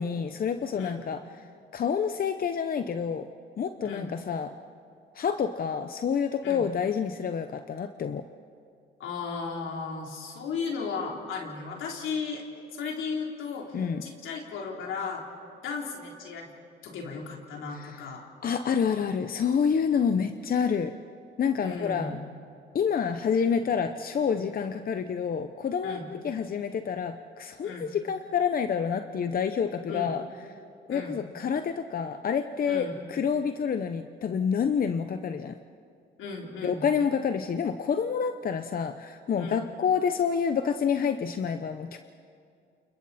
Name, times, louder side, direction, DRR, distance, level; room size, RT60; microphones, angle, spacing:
voice 1, 0.0-1.5 1.7-3.3 3.6-4.5 5.1-8.2 13.7-14.0 17.7-18.0 18.4-20.9 21.4-22.2 22.7-30.2 30.9-35.6 36.6-42.0, left 7 dB, 45° left, 8 dB, 0.9 m, -28 dB
voice 2, 3.8-4.1 6.4-6.7 9.0-12.4 12.7-13.8 14.0-15.2 15.6-16.5 16.8-18.2 21.6-22.2 25.8-26.1 27.6-27.9 29.9-30.1 30.9-31.1 32.7-33.0 36.2-36.9 39.4-39.7, left 5 dB, 85° left, 0 dB, 3.7 m, -35 dB
29.0 x 29.0 x 4.3 m, 2.3 s
cardioid pair, 90°, 20 cm